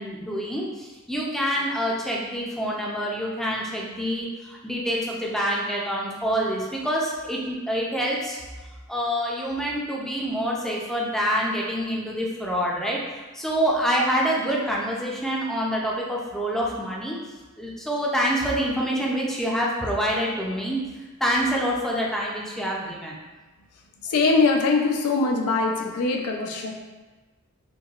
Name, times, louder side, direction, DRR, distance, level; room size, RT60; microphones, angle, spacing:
voice 1, 0.0-8.4 8.9-17.2 17.6-20.8 21.2-23.2, equal, ahead, -3 dB, 0.4 m, -26 dB
voice 2, 24.1-26.7, left 3 dB, 75° left, 2 dB, 0.4 m, -22 dB
4.6 x 2.2 x 2.3 m, 1.2 s
head